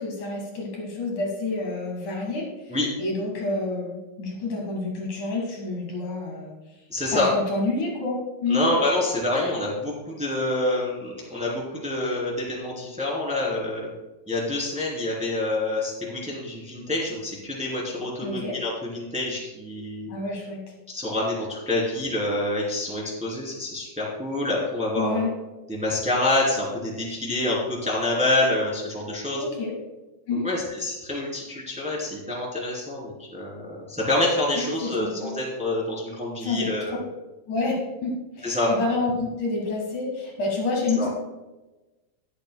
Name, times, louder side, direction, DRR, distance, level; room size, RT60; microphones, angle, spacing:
voice 1, 0.0-6.5 7.1-8.7 18.2-18.5 20.1-20.6 25.0-25.3 29.4-29.7 30.3-30.5 34.6-35.3 36.4-36.7 37.5-41.1, left 3 dB, 65° left, -1 dB, 3.0 m, -28 dB
voice 2, 6.9-7.3 8.5-13.9 14.3-20.1 20.9-25.2 25.7-29.4 30.4-37.0 38.4-38.7 41.0-41.1, left 2 dB, ahead, -4 dB, 2.5 m, -27 dB
20.5 x 8.1 x 2.2 m, 1.1 s
omnidirectional pair, 4.0 m